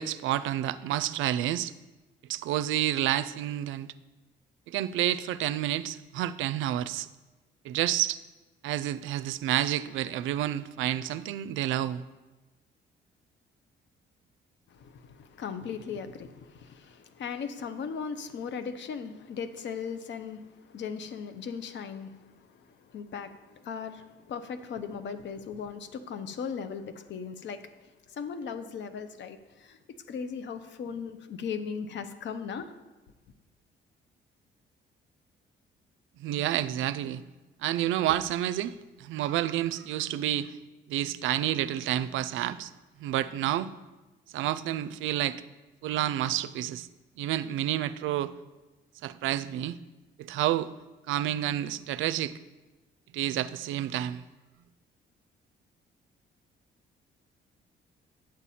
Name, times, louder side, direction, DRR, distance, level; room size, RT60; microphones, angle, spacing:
voice 1, 0.0-1.7 2.3-3.9 4.7-7.1 7.6-8.2 8.6-12.0 36.2-37.3 37.6-40.6 40.9-42.7 43.0-43.7 44.3-45.4 45.8-46.9 47.2-48.4 49.0-49.8 50.2-50.7 51.1-52.4 53.1-54.2, right 12 dB, 80° right, 0.4 m, -29 dB
voice 2, 14.7-27.7 28.1-29.8 30.1-32.7, left 6 dB, 65° left, 0.8 m, -38 dB
8.8 x 7.4 x 4.2 m
cardioid pair, 90°, 20 cm